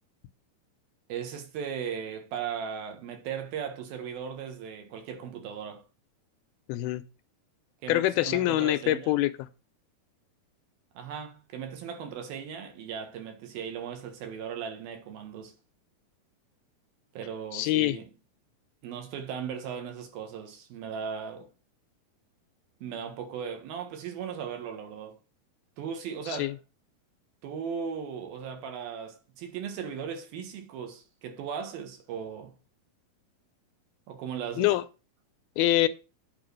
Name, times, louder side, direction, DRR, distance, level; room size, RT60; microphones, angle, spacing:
voice 1, 1.1-5.8 7.8-9.2 10.9-15.5 17.1-18.1 18.8-21.5 22.8-25.2 25.8-26.5 27.4-32.5 34.1-34.7, right 7 dB, 70° right, 3.3 m, -37 dB
voice 2, 6.7-7.0 7.9-9.3 17.5-18.0 26.3-26.5 34.6-34.8 35.6-35.9, left 15 dB, 85° left, 2.5 m, -25 dB
8.7 x 4.6 x 6.4 m
omnidirectional pair, 4.5 m